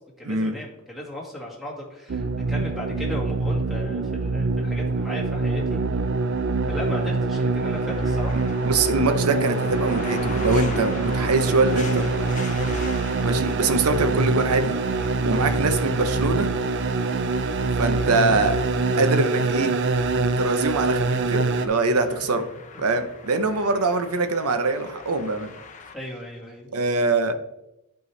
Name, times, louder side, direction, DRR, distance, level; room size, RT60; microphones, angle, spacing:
voice 1, 0.2-5.8 6.6-8.4 12.5-12.9 21.8-22.0 22.7-22.8 25.9-26.7, left 1 dB, ahead, -3 dB, 1.9 m, -36 dB
sound 1, 2.1-21.7, right 3 dB, 55° right, 0.5 m, -24 dB
sound 2, 7.4-25.9, left 4 dB, 35° left, 0.7 m, -41 dB
voice 2, 8.6-12.1 13.2-14.7 15.2-16.5 17.8-18.6 19.0-19.7 20.4-22.4 22.8-25.5 26.7-27.3, right 3 dB, 80° right, 9 dB, 0.8 m, -23 dB
11.0 x 4.6 x 3.2 m, 0.87 s
head